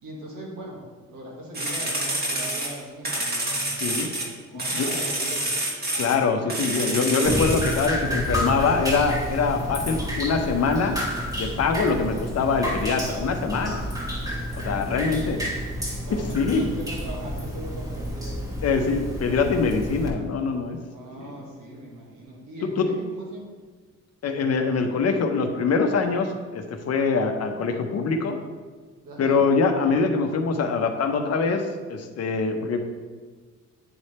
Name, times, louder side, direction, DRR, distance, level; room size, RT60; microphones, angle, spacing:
voice 1, 0.0-4.1 4.5-5.7 14.6-15.4 16.0-18.5 20.8-23.5 29.0-29.4, right 1 dB, 85° right, -3 dB, 1.7 m, -40 dB
sound 1, 1.5-4.3 4.6-6.2 6.5-7.9, right 1 dB, 30° right, 1.6 m, -28 dB
voice 2, 3.8-4.1 4.7-4.9 6.0-11.0 11.3-13.8 14.5-15.4 16.1-16.7 18.6-20.8 21.2-21.3 22.6-22.9 24.2-28.4 29.2-32.8, left 4 dB, 55° left, 5 dB, 0.8 m, -24 dB
Drip, 7.2-20.1, equal, 10° right, 1.3 m, -30 dB
8.9 x 3.3 x 4.2 m, 1.5 s
cardioid pair, 90°, 30 cm